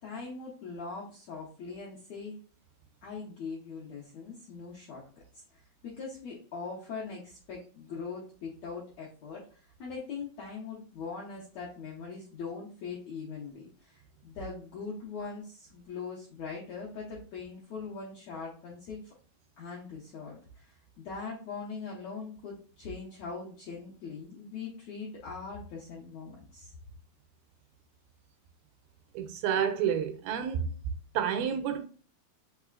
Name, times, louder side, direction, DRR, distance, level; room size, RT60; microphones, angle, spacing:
voice 1, 0.0-2.4 3.0-5.0 5.8-19.1 19.6-26.7, left 4 dB, 80° left, 1.6 m, -41 dB
voice 2, 29.1-30.8 31.1-31.9, right 8 dB, 80° right, 2.2 m, -29 dB
5.4 x 3.4 x 2.4 m
omnidirectional pair, 4.3 m